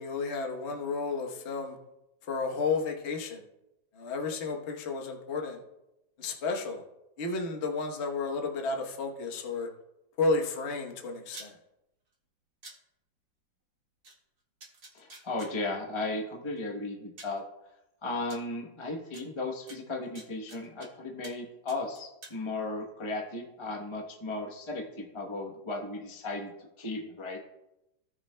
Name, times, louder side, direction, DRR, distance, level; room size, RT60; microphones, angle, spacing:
voice 1, 0.0-1.8 2.2-3.4 3.9-5.6 6.2-6.8 7.2-9.7 10.2-11.5, left 3 dB, 40° left, 2 dB, 1.1 m, -32 dB
sound 1, 11.3-11.5 12.6-12.8 14.0-14.1 14.6-15.5 16.6-16.7 17.2-17.4 18.3-18.4 19.1-19.2 19.7-20.9 21.2-21.4 21.7-22.4, right 2 dB, 55° right, 2.4 m, -48 dB
voice 2, 14.9-17.4 18.0-27.4, left 2 dB, 25° left, 1 dB, 0.6 m, -36 dB
17.0 x 6.4 x 2.2 m, 0.90 s
omnidirectional pair, 2.1 m